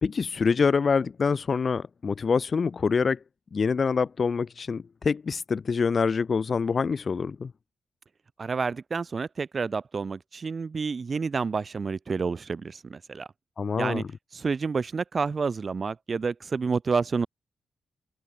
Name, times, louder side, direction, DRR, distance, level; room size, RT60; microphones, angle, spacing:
voice 1, 0.0-3.2 3.5-7.5 13.6-14.0, left 5 dB, 45° left, 0.5 m, -25 dB
voice 2, 8.4-13.3 13.8-14.0 14.3-17.3, right 5 dB, 40° right, 0.4 m, -29 dB
cardioid pair, 115°, 0 cm